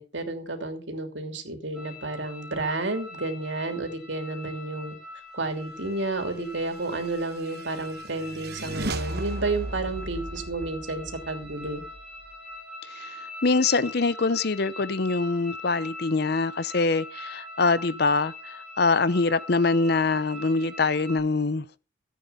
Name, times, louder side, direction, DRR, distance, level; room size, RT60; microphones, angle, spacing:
voice 1, 0.0-5.0 5.3-11.8, right 2 dB, 85° right, 3.0 m, -31 dB
sound 1, 1.7-21.2, left 2 dB, 5° right, 6.0 m, -43 dB
sound 2, 6.7-12.3, right 2 dB, 60° right, 1.2 m, -36 dB
voice 2, 13.4-21.6, left 3 dB, 60° left, 0.8 m, -24 dB
14.5 x 8.6 x 5.6 m
head